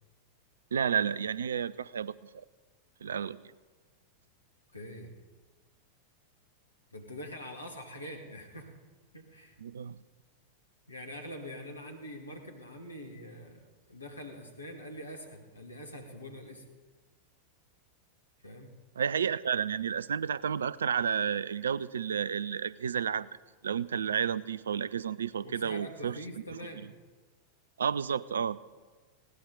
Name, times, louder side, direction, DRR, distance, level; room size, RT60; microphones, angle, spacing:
voice 1, 0.7-2.4 3.0-3.4 9.6-10.0 19.0-23.3 23.6-26.2 27.8-28.6, right 7 dB, 70° right, 19 dB, 0.4 m, -31 dB
voice 2, 4.7-5.1 6.9-8.8 9.1-9.6 10.9-13.6 13.9-16.6 18.4-18.7 25.4-26.9, equal, 80° left, 3 dB, 2.1 m, -44 dB
20.0 x 17.0 x 3.9 m, 1.4 s
figure-of-eight pair, 90°, 0 cm